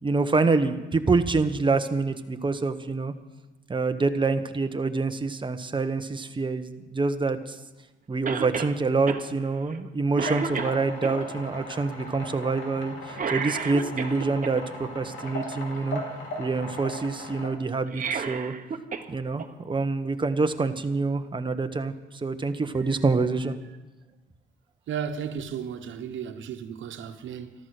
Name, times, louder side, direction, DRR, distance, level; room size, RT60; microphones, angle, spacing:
voice 1, 0.0-3.1 3.7-7.6 8.1-16.0 16.4-18.5 19.1-23.5, right 3 dB, 25° right, 1.2 m, -26 dB
Cough, 8.3-8.7 9.1-9.2 9.7-9.9 10.2-11.1 13.1-14.5 17.8-19.1 19.4-19.5 20.6-20.7, right 6 dB, 40° right, 1.3 m, -31 dB
sound 1, 10.3-17.5, left 1 dB, 75° left, 3.7 m, -38 dB
voice 2, 24.9-27.5, right 7 dB, 75° right, 1.3 m, -34 dB
13.0 x 13.0 x 6.6 m
cardioid pair, 90°, 20 cm